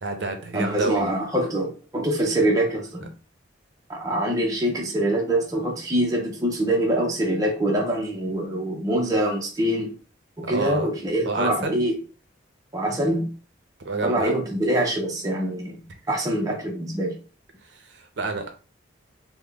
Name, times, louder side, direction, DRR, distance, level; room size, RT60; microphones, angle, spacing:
voice 1, 0.0-1.1 10.4-10.9 11.3-11.8 13.8-14.4 16.1-16.2 17.6-18.5, right 3 dB, 60° right, 5 dB, 0.6 m, -29 dB
voice 2, 0.5-3.1 3.9-9.9 10.4-12.0 12.7-13.3 14.0-15.8 16.1-17.2, right 1 dB, 15° right, -1 dB, 0.6 m, -24 dB
3.5 x 2.1 x 3.4 m, 0.36 s
head